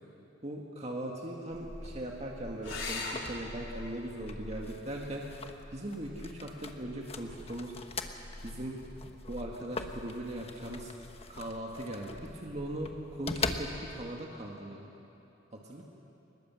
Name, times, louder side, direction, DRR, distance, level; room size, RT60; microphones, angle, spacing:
voice 1, 0.4-5.4 5.7-7.8 8.4-8.8 9.3-10.9 11.3-14.9 15.5-15.8, right 1 dB, 35° right, -1 dB, 1.8 m, -39 dB
sound 1, 1.5-14.1, left 3 dB, 30° left, 1.2 m, -42 dB
sound 2, 2.6-7.6 9.5-10.2 13.6-13.7 14.1-14.2, left 3 dB, 90° left, 3.9 m, -44 dB
25.0 x 20.5 x 7.6 m, 2.8 s
head